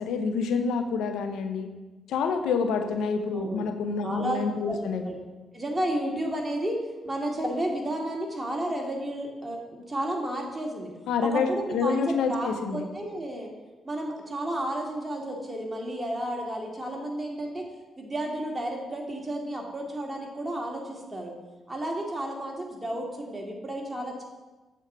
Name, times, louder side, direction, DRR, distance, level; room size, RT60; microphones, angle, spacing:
voice 1, 0.0-1.7 2.1-5.1 11.1-12.8, left 5 dB, 80° left, 7 dB, 0.7 m, -27 dB
voice 2, 3.3-3.6 4.0-5.1 5.5-6.7 7.0-10.9 11.2-13.5 13.8-17.6 18.0-21.3 21.7-24.2, right 1 dB, 25° right, 0 dB, 2.3 m, -32 dB
7.5 x 4.7 x 6.9 m, 1.2 s
supercardioid pair, 50°, 0 cm